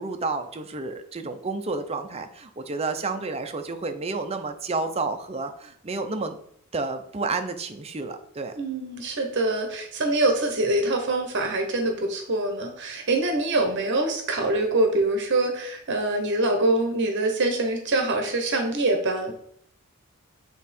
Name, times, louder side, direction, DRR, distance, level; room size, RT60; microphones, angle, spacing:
voice 1, 0.0-6.4 6.7-8.5, right 3 dB, 30° right, 7 dB, 0.6 m, -30 dB
voice 2, 8.6-19.3, right 2 dB, 55° right, 4 dB, 0.9 m, -24 dB
7.8 x 3.6 x 4.3 m, 0.67 s
head